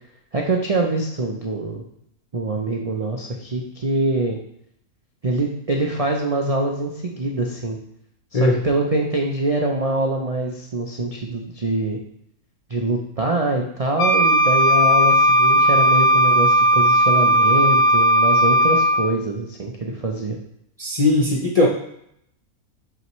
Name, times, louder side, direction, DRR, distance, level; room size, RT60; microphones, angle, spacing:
voice 1, 0.3-1.8 2.3-4.4 5.2-7.8 8.3-12.0 12.7-20.4, right 2 dB, 75° right, 1 dB, 0.3 m, -24 dB
Wind instrument woodwind instrument, 14.0-19.1, equal, 80° left, 1.2 m, -16 dB
voice 2, 20.8-21.7, left 2 dB, 50° left, -3 dB, 0.4 m, -18 dB
6.1 x 5.6 x 3.1 m, 0.74 s
omnidirectional pair, 1.6 m